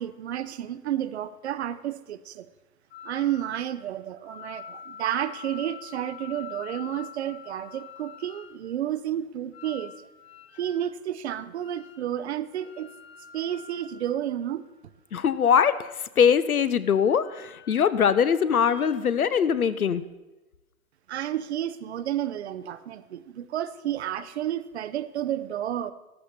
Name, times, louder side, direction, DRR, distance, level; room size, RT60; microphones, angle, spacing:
voice 1, 0.0-2.5 3.0-10.1 10.6-12.9 13.3-14.6 21.1-25.9, right 11 dB, 50° right, 14 dB, 0.7 m, -31 dB
sound 1, 2.9-3.8 4.2-8.6 9.5-10.9 11.6-12.2 12.5-14.7 15.3-16.2 17.1-18.1 18.4-18.8, left 9 dB, 45° left, 2.3 m, -46 dB
voice 2, 15.1-15.8 16.2-20.0, left 7 dB, 75° left, 14 dB, 0.8 m, -22 dB
14.0 x 12.0 x 4.3 m, 1.1 s
figure-of-eight pair, 115°, 43 cm